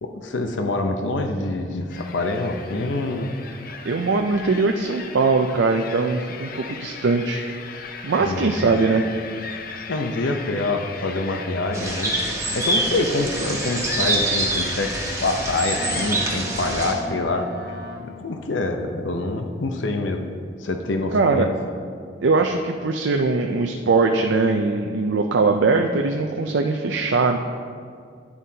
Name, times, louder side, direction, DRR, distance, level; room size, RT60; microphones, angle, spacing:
voice 1, 0.0-3.3 8.2-8.8 9.9-12.1 12.5-15.0 15.2-17.5 18.0-20.3 20.6-21.5, left 2 dB, 90° left, 5 dB, 0.7 m, -26 dB
sound 1, 1.9-16.4, left 5 dB, 50° left, 0.5 m, -37 dB
voice 2, 3.9-7.4 8.0-9.1 21.1-21.5 22.2-27.4, right 3 dB, 80° right, 4 dB, 0.5 m, -21 dB
sound 2, 11.7-16.9, right 2 dB, 15° right, 1.0 m, -26 dB
Boat Water vehicle, 15.8-18.5, left 1 dB, 55° right, 0.9 m, -37 dB
11.0 x 9.5 x 2.8 m, 2.1 s
head